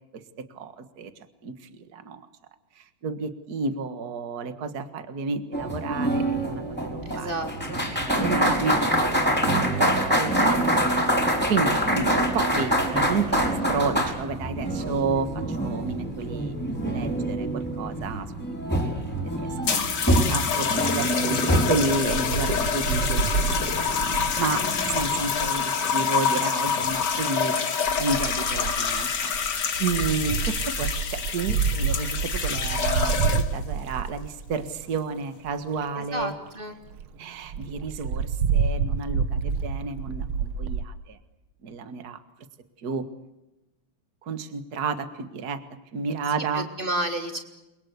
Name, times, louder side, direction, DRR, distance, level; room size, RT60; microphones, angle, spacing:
voice 1, 0.5-1.1 1.4-2.3 2.8-7.3 8.0-11.0 11.5-16.5 16.8-19.1 19.5-19.8 20.3-24.0 24.4-24.6 24.9-27.5 28.0-29.3 29.8-36.3 37.2-41.2 41.6-42.2 42.8-43.0 44.2-45.6 45.9-46.7, right 4 dB, 50° right, 10 dB, 2.1 m, -31 dB
sound 1, 5.5-25.2, right 1 dB, 5° left, 4.5 m, -26 dB
voice 2, 7.1-7.8 24.4-24.7 35.9-36.7 46.5-47.4, right 1 dB, 25° right, 5 dB, 3.8 m, -31 dB
sound 2, 19.6-33.7 34.5-34.9, left 6 dB, 55° left, 2.3 m, -27 dB
Wind, 21.9-25.6 26.7-27.1 27.9-34.8 35.4-35.5 35.8-35.9 36.2-36.3 36.6-36.7 36.9-37.1 37.5-40.8, right 6 dB, 85° right, 2.0 m, -28 dB
29.5 x 23.0 x 8.3 m, 0.97 s
omnidirectional pair, 2.2 m